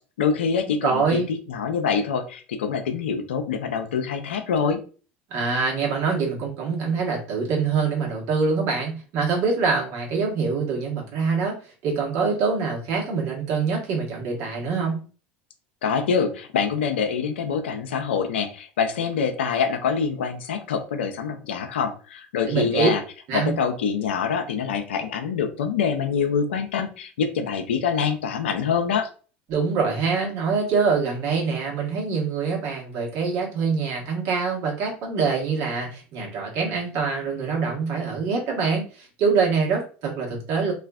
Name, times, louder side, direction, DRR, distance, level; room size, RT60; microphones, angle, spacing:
voice 1, 0.2-4.8 15.8-23.0 23.3-29.1, left 6 dB, 85° left, 6 dB, 0.4 m, -25 dB
voice 2, 0.8-1.3 5.3-11.6 11.8-15.0 22.5-22.9 23.3-23.5 29.5-40.7, right 5 dB, 60° right, -1 dB, 1.1 m, -24 dB
2.4 x 2.4 x 2.3 m, 0.37 s
hypercardioid pair, 80°, 6 cm